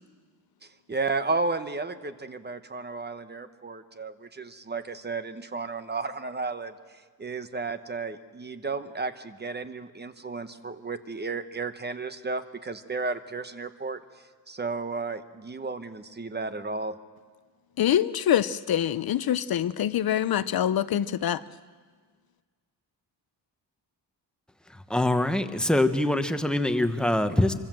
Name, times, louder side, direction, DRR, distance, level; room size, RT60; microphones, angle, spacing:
voice 1, 0.9-6.7 7.2-14.0 14.5-16.9, right 3 dB, 25° right, 10 dB, 1.0 m, -33 dB
voice 2, 17.8-21.4, left 10 dB, 60° left, 15 dB, 0.7 m, -25 dB
voice 3, 24.9-27.5, left 1 dB, ahead, 8 dB, 1.1 m, -24 dB
26.0 x 25.0 x 7.6 m, 1.5 s
wide cardioid pair, 160°, 42 cm